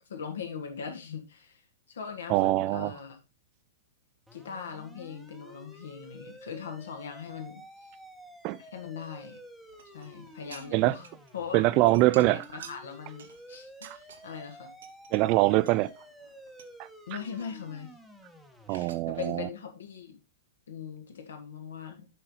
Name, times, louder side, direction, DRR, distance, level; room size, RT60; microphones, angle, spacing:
voice 1, 0.1-1.6 1.9-3.2 4.3-7.6 8.6-9.4 9.9-11.1 11.3-11.6 12.2-14.7 17.1-17.9 18.7-20.2 20.7-22.1, left 7 dB, 60° left, 1.8 m, -40 dB
voice 2, 2.3-2.9 8.4-8.6 10.7-10.9 11.5-12.4 13.8-14.0 15.1-15.9 18.7-19.5, right 18 dB, 35° right, 0.3 m, -23 dB
sound 1, 4.3-18.7, right 1 dB, ahead, 1.1 m, -51 dB
sound 2, 9.7-11.3 11.6-14.5 14.8-15.2 15.6-16.7 17.1-18.3 18.7-19.4, right 6 dB, 60° right, 1.1 m, -52 dB
7.6 x 5.5 x 3.8 m
figure-of-eight pair, 105°, 0 cm